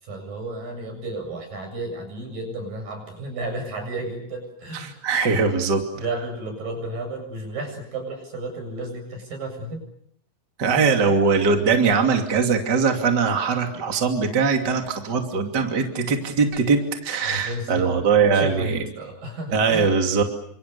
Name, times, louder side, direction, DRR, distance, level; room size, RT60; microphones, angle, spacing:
voice 1, 0.0-5.0 6.0-9.8 17.4-17.9 18.3-19.9, right 2 dB, 80° right, 5 dB, 9.4 m, -32 dB
voice 2, 4.7-5.8 10.6-18.9 19.5-20.2, right 5 dB, 30° right, 4 dB, 3.1 m, -21 dB
30.0 x 26.0 x 6.9 m, 0.68 s
omnidirectional pair, 3.9 m